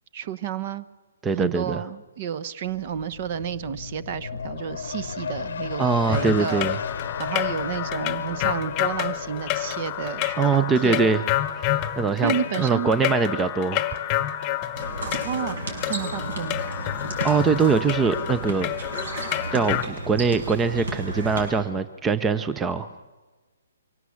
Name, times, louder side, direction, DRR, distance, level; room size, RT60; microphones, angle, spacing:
voice 1, 0.1-0.9 1.3-6.7 7.2-11.1 12.2-12.9 15.2-15.6 15.9-16.6, right 8 dB, 40° right, 14 dB, 0.9 m, -31 dB
voice 2, 1.2-1.8 5.8-6.8 10.4-11.2 12.0-13.8 17.2-18.7 19.5-22.9, right 5 dB, 10° right, 12 dB, 0.6 m, -22 dB
sound 1, 2.7-16.0 16.4-16.5, left 6 dB, 60° left, 0.8 m, -37 dB
sound 2, 6.1-19.8, left 13 dB, 25° left, 1.0 m, -29 dB
sound 3, 14.7-21.5, right 2 dB, 65° right, 6.2 m, -33 dB
24.0 x 17.0 x 7.2 m, 1.3 s
figure-of-eight pair, 130°, 0 cm